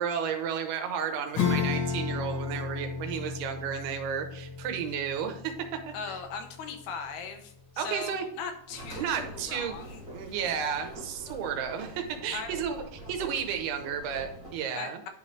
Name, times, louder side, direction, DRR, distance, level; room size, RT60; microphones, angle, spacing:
voice 1, 0.0-5.5 5.9-6.2 7.8-8.3 9.0-9.7 10.1-12.8 13.1-15.0, right 7 dB, 85° right, 5 dB, 2.9 m, -32 dB
Acoustic guitar / Strum, 1.3-7.3, left 6 dB, 45° left, 2.0 m, -33 dB
voice 2, 5.9-10.0 12.3-12.5 14.7-15.1, left 5 dB, 80° left, 5 dB, 2.9 m, -39 dB
sound 1, 8.7-14.6, right 1 dB, 10° left, 1.7 m, -45 dB
10.5 x 4.3 x 3.1 m, 0.72 s
omnidirectional pair, 4.6 m